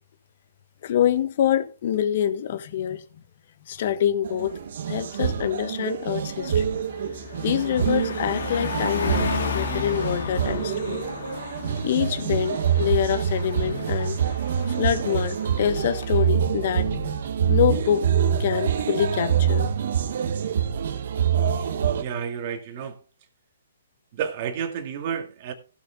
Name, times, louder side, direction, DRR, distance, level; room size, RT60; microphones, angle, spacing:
voice 1, 0.8-3.0 3.7-4.5 4.9-6.6 7.4-11.0 11.8-14.2 14.8-17.2 17.5-18.1 18.4-19.7, left 10 dB, 50° left, 1.3 m, -25 dB
sound 1, 4.2-22.0, right 8 dB, 60° right, 1.5 m, -26 dB
Car passing by, 4.5-4.7 5.1-16.1, left 6 dB, 70° left, 2.3 m, -34 dB
voice 2, 21.6-23.0 24.1-25.5, right 8 dB, 40° right, 2.3 m, -31 dB
16.0 x 7.0 x 3.7 m
hypercardioid pair, 145°, 0 cm